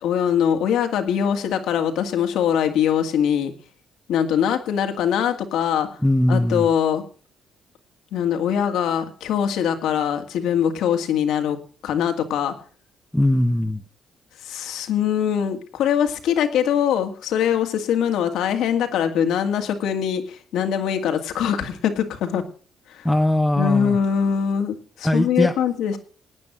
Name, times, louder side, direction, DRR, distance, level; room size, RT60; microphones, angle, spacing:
voice 1, 0.0-3.5 4.1-6.0 6.3-7.0 8.1-11.6 11.8-12.5 14.4-22.4 22.9-23.1 23.6-26.0, left 8 dB, 85° left, 6 dB, 2.1 m, -22 dB
voice 2, 6.0-6.7 13.1-13.8 23.0-24.0 25.0-25.5, left 1 dB, 5° left, 2 dB, 1.1 m, -20 dB
17.5 x 9.5 x 6.2 m, 0.42 s
cardioid pair, 90°, 0 cm